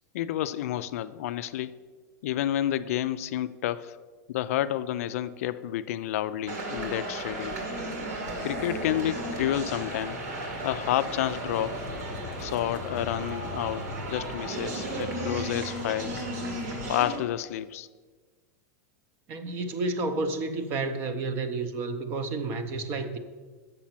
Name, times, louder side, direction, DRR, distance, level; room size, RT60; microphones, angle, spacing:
voice 1, 0.1-1.8 2.2-4.0 4.3-7.6 8.4-10.2 10.6-11.9 12.4-16.3 16.9-17.9, left 12 dB, 60° left, 13 dB, 0.3 m, -30 dB
sound 1, 6.5-17.2, right 2 dB, 80° right, 2.0 m, -35 dB
sound 2, 8.3-16.9, left 4 dB, 30° left, 0.9 m, -44 dB
voice 2, 19.3-23.2, right 3 dB, 25° right, 9 dB, 0.6 m, -30 dB
7.4 x 6.8 x 5.7 m, 1.4 s
supercardioid pair, 175°, 9 cm